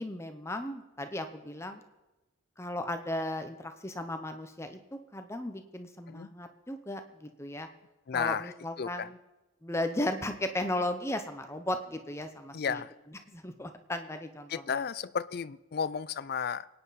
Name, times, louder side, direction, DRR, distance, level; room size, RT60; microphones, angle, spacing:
voice 1, 0.0-1.8 2.6-7.7 8.1-9.2 9.6-12.8 13.3-14.6, left 1 dB, 15° left, 7 dB, 0.8 m, -36 dB
voice 2, 8.1-8.5 8.8-9.1 12.5-12.9 14.5-16.7, left 6 dB, 45° left, 17 dB, 0.4 m, -33 dB
25.0 x 9.6 x 4.1 m, 1.1 s
head